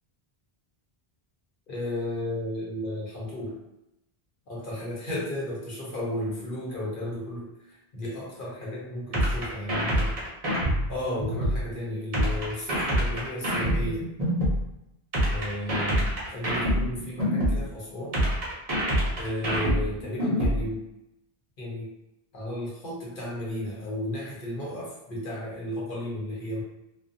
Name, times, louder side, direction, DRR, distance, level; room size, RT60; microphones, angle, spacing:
voice 1, 1.7-3.6 4.5-10.2 10.9-14.1 15.2-18.3 19.1-20.8 21.6-21.9 22.3-26.6, left 1 dB, 60° left, -5 dB, 1.0 m, -34 dB
sound 1, 9.1-11.6 12.1-14.6 15.1-17.6 18.1-20.6, equal, 40° right, 0.8 m, -25 dB
2.5 x 2.3 x 2.6 m, 0.86 s
omnidirectional pair, 1.0 m